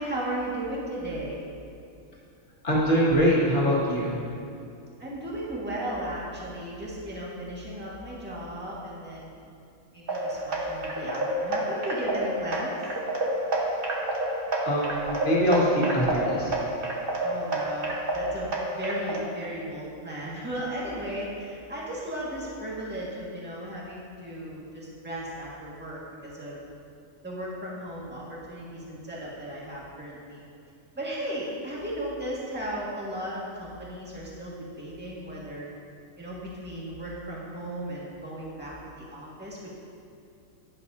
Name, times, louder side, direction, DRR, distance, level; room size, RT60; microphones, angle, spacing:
voice 1, 0.0-1.4 5.0-9.4 9.9-12.8 17.2-26.6 27.2-30.4 31.0-35.7 36.2-39.6, right 1 dB, 5° right, -6 dB, 1.8 m, -35 dB
voice 2, 2.6-4.1 14.6-16.5, equal, 45° left, -6 dB, 2.3 m, -23 dB
sound 1, 10.1-19.2, right 1 dB, 45° right, 1.4 m, -29 dB
12.5 x 11.0 x 2.8 m, 2.5 s
omnidirectional pair, 1.4 m